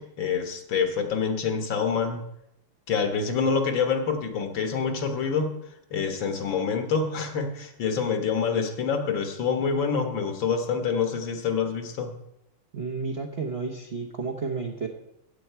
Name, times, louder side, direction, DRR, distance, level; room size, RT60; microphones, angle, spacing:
voice 1, 0.0-2.2 2.9-5.5 5.9-12.1, left 5 dB, 65° left, 5 dB, 2.0 m, -26 dB
voice 2, 12.7-14.9, right 4 dB, 45° right, 1 dB, 0.9 m, -31 dB
15.5 x 8.5 x 4.6 m, 0.82 s
omnidirectional pair, 2.3 m